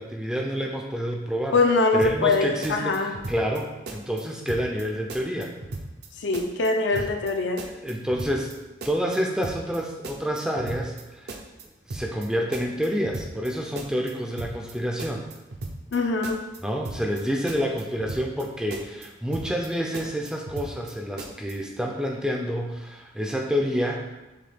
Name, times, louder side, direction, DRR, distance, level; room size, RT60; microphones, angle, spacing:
voice 1, 0.0-1.6 1.9-5.5 6.9-7.1 7.6-8.5 8.8-11.4 11.9-15.3 16.6-24.1, equal, 5° right, 0 dB, 0.4 m, -28 dB
voice 2, 1.5-3.2 6.2-7.6 15.9-16.4, left 3 dB, 75° left, 4 dB, 0.5 m, -23 dB
sound 1, 2.0-2.4 2.6-3.6 3.9-4.2 4.5-4.8 5.1-6.1 6.3-6.7 6.9-7.3 7.6-8.5 8.8-9.2 9.4-9.8 10.0-11.0 11.3-11.6 11.9-12.3 12.5-13.5 13.8-14.1 14.4-14.7 15.0-16.0 16.2-16.6 16.8-17.2 17.5-18.4 18.7-19.1 19.3-19.7 19.9-20.9 21.2-21.5, right 2 dB, 60° right, 0.5 m, -36 dB
6.5 x 2.3 x 3.4 m, 1.0 s
head